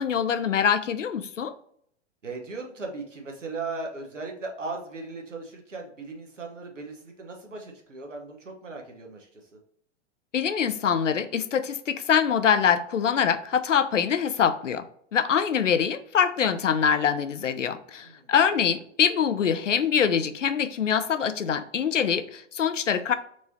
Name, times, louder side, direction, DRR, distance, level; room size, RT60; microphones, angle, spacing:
voice 1, 0.0-1.5 10.3-14.8 15.1-23.1, left 7 dB, 75° left, 0.6 m, -24 dB
voice 2, 2.2-9.6 18.0-18.3, right 3 dB, 80° right, 1.2 m, -38 dB
4.6 x 2.8 x 4.1 m
figure-of-eight pair, 100°, 37 cm